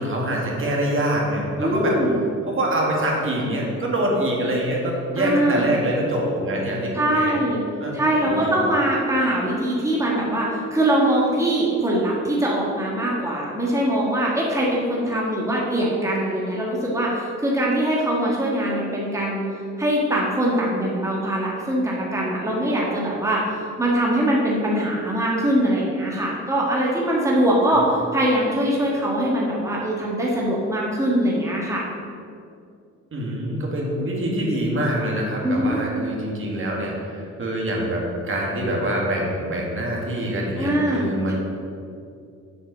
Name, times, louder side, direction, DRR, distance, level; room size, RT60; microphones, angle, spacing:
voice 1, 0.0-2.0 2.5-7.4 7.8-8.6 27.7-27.8 33.1-41.3, right 1 dB, 45° right, -2 dB, 1.9 m, -25 dB
voice 2, 1.6-2.2 5.2-5.7 6.9-7.6 7.9-19.4 19.8-23.5 23.8-31.8 35.4-35.8 40.6-41.3, right 1 dB, 10° right, -4 dB, 1.6 m, -22 dB
7.4 x 4.6 x 6.8 m, 2.4 s
cardioid pair, 90°, 30 cm